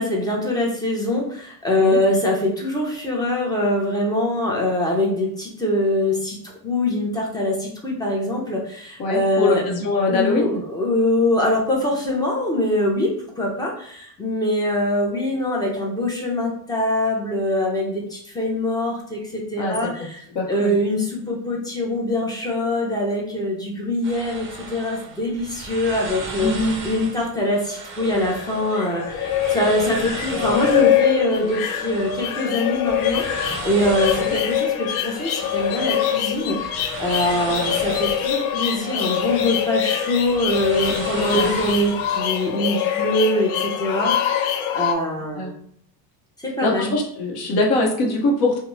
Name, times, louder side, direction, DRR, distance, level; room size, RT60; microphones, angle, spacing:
voice 1, 0.0-6.4 6.6-9.6 10.1-20.2 20.5-26.5 26.8-45.5 46.4-46.9, left 1 dB, 10° left, -2 dB, 0.7 m, -23 dB
voice 2, 9.0-10.6 19.6-19.8 20.3-20.8 26.4-26.8 40.9-41.1 41.3-41.5 45.4-45.5 46.6-48.6, left 2 dB, 50° left, 0 dB, 1.0 m, -22 dB
sound 1, 24.0-42.5, right 3 dB, 25° right, 0.6 m, -36 dB
sound 2, 28.0-44.9, left 10 dB, 70° left, 0.6 m, -24 dB
2.6 x 2.3 x 3.1 m, 0.66 s
supercardioid pair, 120°, 48 cm